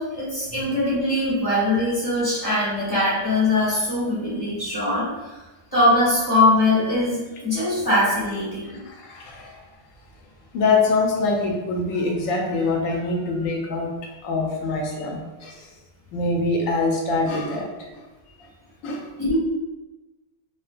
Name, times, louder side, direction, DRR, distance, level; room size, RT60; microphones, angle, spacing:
voice 1, 0.0-5.4 5.7-8.7 19.2-19.4, left 1 dB, 15° left, -10 dB, 1.0 m, -22 dB
voice 2, 8.9-9.5 10.5-13.9 14.2-15.6 16.1-18.0 18.8-19.0, left 3 dB, 75° left, 0 dB, 1.0 m, -24 dB
2.7 x 2.2 x 2.4 m, 1.1 s
omnidirectional pair, 1.4 m